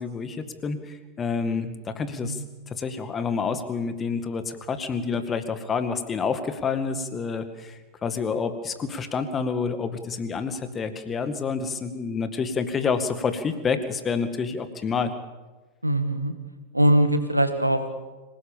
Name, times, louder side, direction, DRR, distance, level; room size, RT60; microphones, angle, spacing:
voice 1, 0.0-15.1, left 5 dB, 20° left, 10 dB, 2.0 m, -28 dB
voice 2, 15.8-16.3 16.7-17.9, right 1 dB, 85° right, 8 dB, 2.0 m, -22 dB
26.0 x 18.0 x 7.2 m, 1.2 s
figure-of-eight pair, 90°, 0 cm